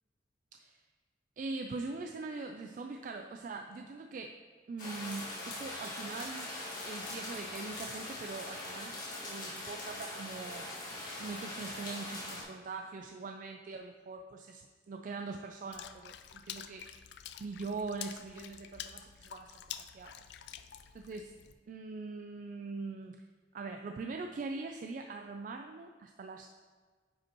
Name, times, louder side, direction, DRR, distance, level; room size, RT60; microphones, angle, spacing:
voice 1, 1.4-4.4 4.7-6.5 6.8-10.7 11.2-14.6 14.9-16.9 17.4-19.5 19.8-20.1 20.9-21.3 21.7-23.3 23.5-26.5, right 3 dB, 45° right, 4 dB, 0.3 m, -42 dB
sound 1, 4.8-12.4, left 2 dB, 50° left, 1.8 m, -42 dB
Water / Splash splatter, 15.7-21.5, left 10 dB, 65° left, 0.3 m, -47 dB
9.6 x 5.2 x 2.9 m, 1.5 s
head